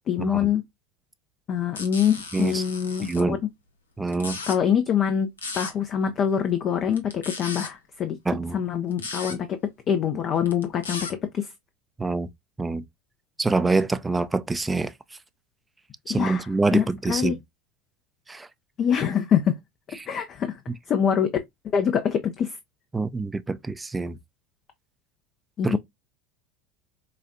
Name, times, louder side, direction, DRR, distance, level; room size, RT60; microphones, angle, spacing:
voice 1, 0.1-0.6 1.5-3.4 4.5-5.3 5.5-8.2 8.5-9.6 9.9-11.1 11.3-11.5 16.1-17.4 18.8-19.5 20.1-20.6 20.9-21.3 21.7-22.6 25.6-25.8, left 8 dB, 40° left, 0.6 m, -24 dB
sound 1, 1.7-3.2 4.1-4.6 5.4-5.7 6.9-7.7 8.9-9.4 10.4-11.1, left 4 dB, 85° left, 0.8 m, -35 dB
voice 2, 2.3-2.6 3.0-3.4 4.0-4.4 8.3-8.6 12.0-12.3 12.6-12.8 13.4-14.9 16.1-17.4 18.3-18.5 22.9-24.2 25.6-25.8, right 3 dB, 15° right, 0.4 m, -25 dB
4.9 x 2.3 x 2.6 m
hypercardioid pair, 80°, 0 cm